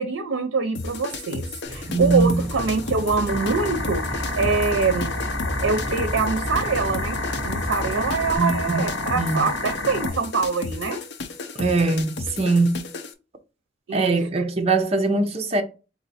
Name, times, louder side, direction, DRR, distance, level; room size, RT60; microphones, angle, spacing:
voice 1, 0.0-4.0 4.4-5.1 5.6-11.0 13.9-14.2, right 4 dB, 85° right, 0.5 m, -24 dB
sound 1, 0.8-13.1, left 3 dB, 60° left, 0.6 m, -34 dB
Aircraft, 1.6-8.4, equal, 10° right, 2.4 m, -33 dB
voice 2, 1.9-2.4 8.4-9.5 11.5-12.8 13.9-15.6, right 3 dB, 30° right, 0.6 m, -22 dB
sound 2, 3.3-10.1, left 3 dB, 80° left, 1.0 m, -30 dB
4.1 x 2.5 x 4.1 m
head